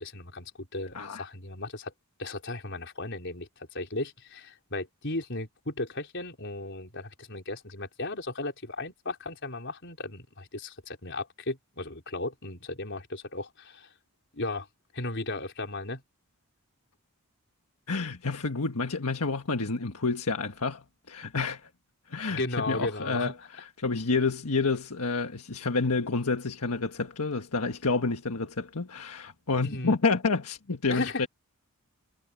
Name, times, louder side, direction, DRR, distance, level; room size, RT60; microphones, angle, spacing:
voice 1, 0.0-1.9 2.2-13.9 14.3-14.7 14.9-16.0 22.3-23.3 29.6-30.0 30.9-31.2, left 2 dB, 55° left, 4.6 m, -35 dB
voice 2, 0.9-1.2 17.9-21.7 22.1-31.3, left 4 dB, 85° left, 1.5 m, -29 dB
head